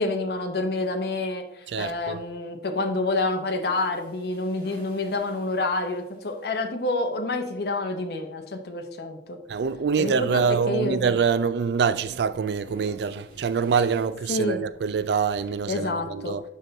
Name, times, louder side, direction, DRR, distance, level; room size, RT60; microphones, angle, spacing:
voice 1, 0.0-9.4 10.0-11.0 14.3-14.6 15.7-16.3, left 2 dB, 60° left, 0.8 m, -28 dB
voice 2, 1.7-2.2 9.5-16.4, right 6 dB, 70° right, 0.3 m, -25 dB
sound 1, 3.4-6.9 7.3-7.4 7.5-7.6 8.6-8.8 9.2-9.3 9.5-11.4 11.7-12.0 12.3-14.1, equal, 50° right, 2.6 m, -53 dB
6.3 x 5.3 x 3.9 m
head